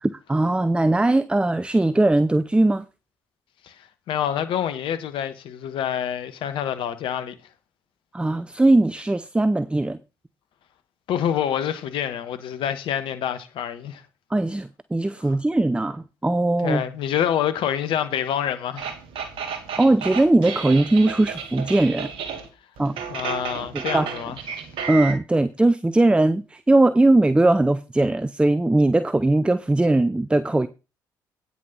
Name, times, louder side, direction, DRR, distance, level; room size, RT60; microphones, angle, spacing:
voice 1, 0.0-2.8 8.1-10.0 14.3-16.8 19.8-22.1 22.8-22.9 23.7-24.1 24.9-30.7, right 2 dB, 10° right, 0.6 m, -20 dB
voice 2, 3.6-7.3 11.1-14.0 15.2-15.3 16.6-18.9 23.1-24.6, left 9 dB, 65° left, 1.3 m, -27 dB
sound 1, 18.8-22.5 22.8-25.1, right 6 dB, 70° right, 2.2 m, -32 dB
9.7 x 6.2 x 5.5 m
hypercardioid pair, 55°, 9 cm